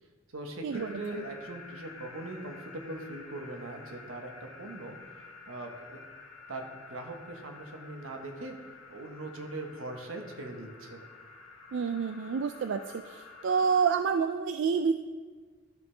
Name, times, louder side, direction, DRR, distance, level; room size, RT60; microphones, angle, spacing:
voice 1, 0.3-4.9 5.5-6.0 6.5-8.5 8.9-11.0, right 2 dB, 85° right, 4 dB, 1.1 m, -41 dB
sound 1, 0.7-13.9, left 4 dB, 85° left, 1.6 m, -50 dB
voice 2, 11.7-12.8 13.1-14.9, right 6 dB, 65° right, 7 dB, 0.3 m, -28 dB
12.0 x 5.5 x 3.3 m, 1.5 s
head